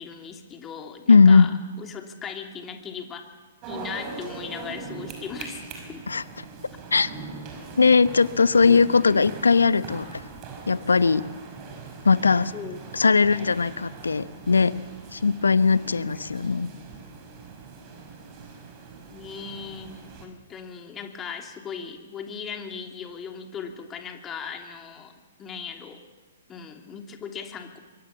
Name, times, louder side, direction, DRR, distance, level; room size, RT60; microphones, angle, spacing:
voice 1, 0.0-1.5 1.8-3.2 3.7-6.0 12.5-12.8 19.1-25.1 25.4-26.0 26.5-27.8, left 6 dB, 20° left, 4 dB, 3.0 m, -38 dB
voice 2, 1.1-1.5 6.1-6.2 6.9-7.1 7.8-10.2 10.7-11.2 12.0-12.5 12.9-14.7 15.1-16.7, left 4 dB, 80° left, 15 dB, 1.0 m, -19 dB
sound 1, 3.6-20.3, right 4 dB, 30° right, 5.6 m, -41 dB
25.0 x 23.5 x 7.2 m, 1.3 s
figure-of-eight pair, 120°, 0 cm